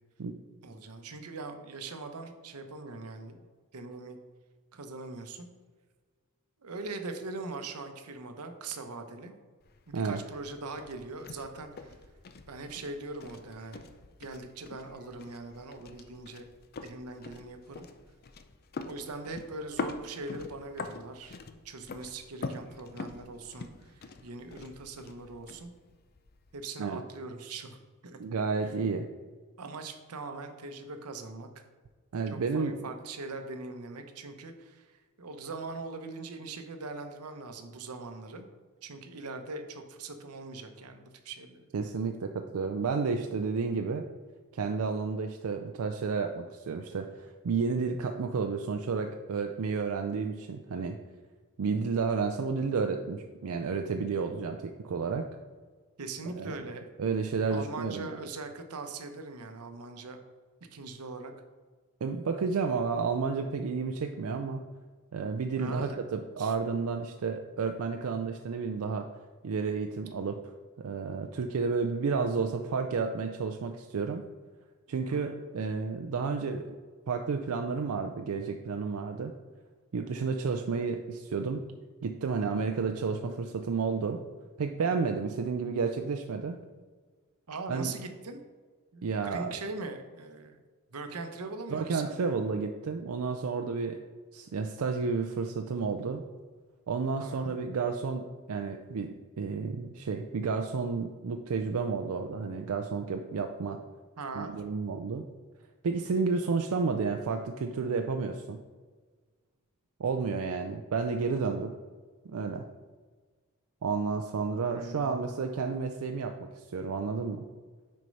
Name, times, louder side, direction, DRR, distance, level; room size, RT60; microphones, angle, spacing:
voice 1, 0.6-3.4 3.7-4.2 4.7-5.5 6.6-9.3 9.9-12.0 12.4-13.9 14.2-16.5 16.8-17.9 18.8-21.4 21.6-25.7 26.5-28.2 28.6-28.7 29.6-31.6 32.3-38.5 38.8-41.7 56.0-56.8 57.5-60.2 60.7-61.3 65.6-66.0 66.4-66.5 75.1-75.4 82.4-82.7 87.5-88.4 88.9-90.6 90.9-92.1 97.2-97.6 104.2-104.6 114.7-115.2, right 3 dB, 90° right, 6 dB, 0.8 m, -41 dB
sound 1, 9.6-26.6, left 3 dB, 45° left, 0.5 m, -44 dB
voice 2, 28.2-29.1 32.1-32.7 41.7-44.0 44.5-51.0 51.6-55.3 56.3-56.6 57.0-58.2 62.0-64.6 65.1-69.1 69.4-70.4 70.8-74.2 74.9-76.7 77.1-79.3 79.9-81.6 82.0-84.2 84.6-86.6 87.7-87.9 89.0-89.6 91.7-94.0 94.3-96.2 96.9-103.8 104.3-105.2 105.8-108.6 110.0-111.7 112.2-112.7 113.8-117.5, right 5 dB, 70° right, 5 dB, 0.4 m, -31 dB
6.2 x 4.4 x 5.3 m, 1.4 s
head